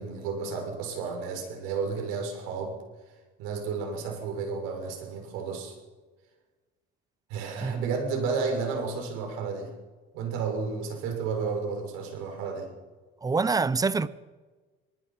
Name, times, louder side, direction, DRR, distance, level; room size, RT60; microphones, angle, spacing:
voice 1, 0.0-2.8 3.4-5.7 7.3-9.7 10.1-12.7, right 5 dB, 90° right, 6.3 m, -32 dB
voice 2, 13.2-14.1, right 4 dB, 15° right, 0.8 m, -25 dB
25.0 x 20.0 x 5.8 m
cardioid pair, 125°, 21 cm